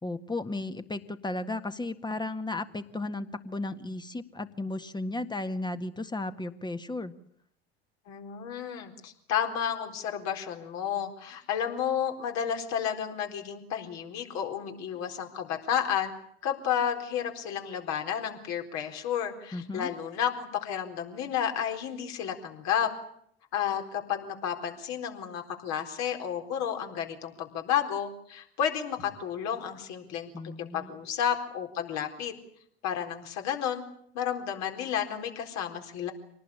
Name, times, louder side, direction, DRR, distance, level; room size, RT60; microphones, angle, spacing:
voice 1, 0.0-7.1 19.5-19.9 30.3-30.9, left 2 dB, 15° left, 9 dB, 1.8 m, -34 dB
voice 2, 8.1-16.1 16.4-22.9 23.5-30.3 30.7-32.3 32.8-33.9 34.1-36.1, left 8 dB, 55° left, 4 dB, 4.1 m, -31 dB
25.5 x 19.0 x 8.6 m, 0.69 s
hypercardioid pair, 75°, 32 cm